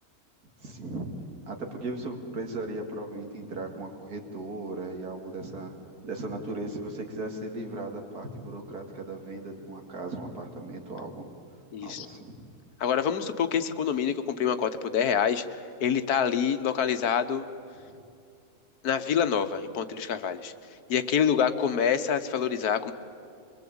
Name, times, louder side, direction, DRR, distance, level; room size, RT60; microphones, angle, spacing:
voice 1, 0.6-1.1 1.5-5.7 6.0-11.3 11.8-12.5, right 2 dB, 80° right, 3 dB, 2.9 m, -37 dB
voice 2, 11.7-12.1 12.8-15.4 15.8-17.5 18.8-20.5 20.9-22.9, left 7 dB, 85° left, 10 dB, 1.5 m, -26 dB
23.0 x 22.5 x 8.7 m, 2.5 s
omnidirectional pair, 1.6 m